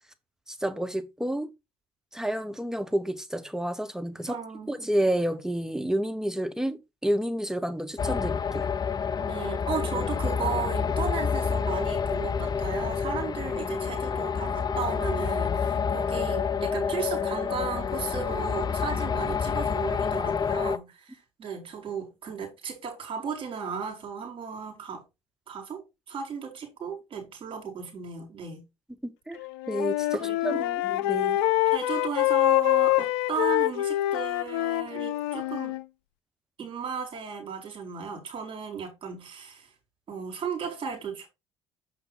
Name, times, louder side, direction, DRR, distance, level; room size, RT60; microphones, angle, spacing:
voice 1, 0.5-1.5 2.1-4.4 4.7-8.7 29.0-29.4 29.7-30.6 30.8-31.4, right 1 dB, 5° right, 1.2 m, -30 dB
voice 2, 4.2-4.8 9.2-25.0 25.5-28.6 30.2-30.8 31.6-35.8 36.6-39.7 40.1-41.3, right 6 dB, 40° right, 4.5 m, -35 dB
sound 1, 8.0-20.8, left 6 dB, 30° left, 0.6 m, -28 dB
Wind instrument woodwind instrument, 29.4-35.8, left 16 dB, 75° left, 0.4 m, -25 dB
6.8 x 5.8 x 3.9 m
hypercardioid pair, 60°, 13 cm